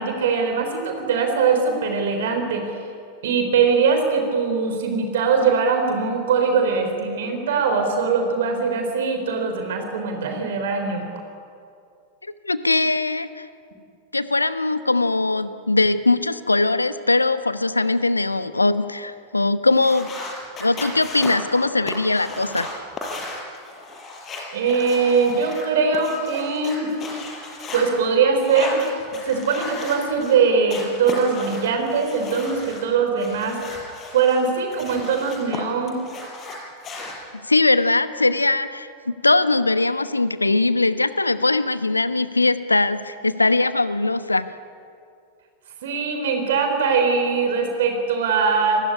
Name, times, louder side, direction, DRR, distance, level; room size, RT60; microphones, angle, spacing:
voice 1, 0.0-2.7 3.2-11.0 24.5-26.9 27.7-28.9 29.3-33.6 34.1-36.0 45.8-48.8, right 5 dB, 60° right, 5 dB, 3.8 m, -21 dB
voice 2, 12.5-13.5 14.1-20.1 20.6-22.8 37.4-44.5, left 2 dB, 80° left, 13 dB, 1.1 m, -21 dB
sound 1, 19.7-27.9 28.4-30.4 30.7-32.8 33.2-35.6 35.9-37.1, left 2 dB, 25° left, 6.7 m, -35 dB
28.0 x 20.0 x 9.8 m, 2.4 s
figure-of-eight pair, 90°, 0 cm